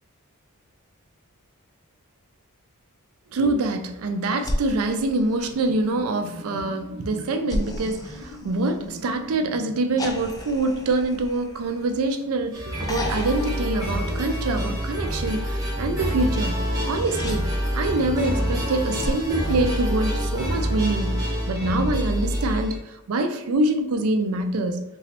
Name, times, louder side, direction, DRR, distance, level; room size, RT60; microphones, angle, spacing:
voice 1, 3.3-16.6 16.9-24.8, right 2 dB, 65° right, 7 dB, 0.4 m, -25 dB
sound 1, 4.4-6.0 7.5-9.2 10.0-12.3 12.8-14.7 16.6-17.4 19.0-20.5 22.0-22.1, left 1 dB, 15° left, 0.3 m, -34 dB
sound 2, 5.4-10.3, left 1 dB, 45° left, 0.7 m, -41 dB
sound 3, 12.5-22.8, equal, 15° right, 0.8 m, -27 dB
3.0 x 2.9 x 2.9 m, 0.89 s
head